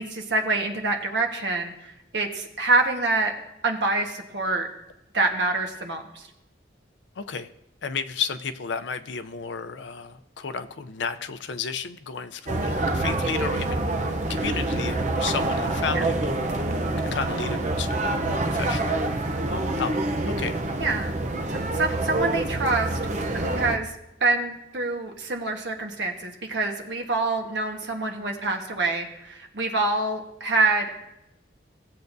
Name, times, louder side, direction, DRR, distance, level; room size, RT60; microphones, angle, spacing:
voice 1, 0.0-3.3 3.6-4.7 5.1-6.2 15.9-16.0 20.8-21.2 21.5-23.0 23.3-23.9 24.2-30.9, right 3 dB, 75° right, 3 dB, 1.3 m, -26 dB
voice 2, 7.2-7.5 7.8-19.0 19.5-19.9 20.3-20.6, left 6 dB, 80° left, 10 dB, 0.6 m, -33 dB
sound 1, 12.5-23.8, right 2 dB, 40° right, 0.7 m, -26 dB
17.0 x 7.9 x 2.6 m, 0.86 s
head